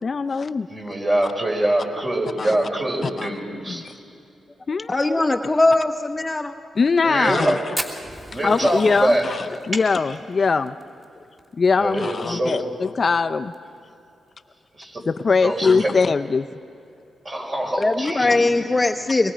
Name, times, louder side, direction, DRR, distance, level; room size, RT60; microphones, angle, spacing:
voice 1, 0.0-0.7 2.4-2.5 3.0-3.3 3.7-3.9 4.7-4.9 6.8-7.8 8.4-10.8 11.5-13.5 15.1-16.6, left 4 dB, 45° left, 10 dB, 0.5 m, -21 dB
voice 2, 0.7-3.8 7.0-7.6 8.3-9.3 11.8-12.7 14.8-15.0 15.4-15.9 17.2-18.4, right 1 dB, 35° right, 0 dB, 5.3 m, -24 dB
voice 3, 4.9-6.5 17.8-19.3, left 2 dB, 20° left, 5 dB, 0.8 m, -20 dB
Fire, 7.7-12.3 12.5-12.6 12.9-13.0 13.3-13.8 14.3-14.4 15.4-15.6, equal, 20° right, 3.0 m, -35 dB
24.5 x 22.0 x 5.1 m, 2.6 s
cardioid pair, 75°, 0 cm